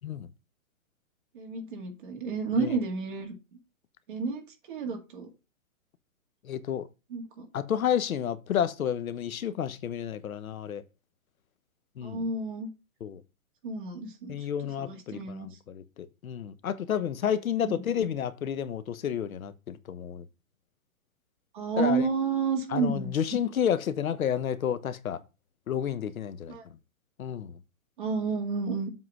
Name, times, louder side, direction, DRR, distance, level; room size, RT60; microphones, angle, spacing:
voice 1, 1.3-3.3 4.1-4.4 4.7-5.3 7.1-7.5 12.0-12.7 13.6-14.3 14.8-15.5 17.6-17.7 21.5-23.5 26.5-26.7 28.0-28.9, right 4 dB, 40° right, 2.1 m, -31 dB
voice 2, 6.4-6.9 7.5-10.8 12.0-12.2 13.0-13.2 14.3-20.2 21.8-22.1 22.7-25.2 25.7-26.6 27.2-27.6, left 9 dB, 85° left, 1.1 m, -30 dB
7.6 x 4.0 x 6.0 m
hypercardioid pair, 175°, 41 cm